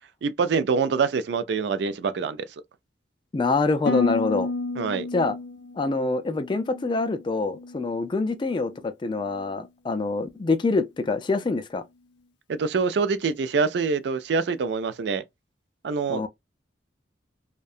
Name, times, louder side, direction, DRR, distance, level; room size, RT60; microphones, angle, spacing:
voice 1, 0.2-2.5 4.8-5.1 12.5-15.2 15.8-16.2, right 5 dB, 70° right, 0.4 m, -25 dB
voice 2, 3.3-4.5 5.1-5.3 5.8-11.8 16.1-16.3, left 3 dB, 25° left, 0.3 m, -25 dB
Harp, 3.9-8.0 8.3-8.8 9.3-9.6, left 2 dB, 85° left, 0.5 m, -32 dB
2.7 x 2.1 x 2.3 m
head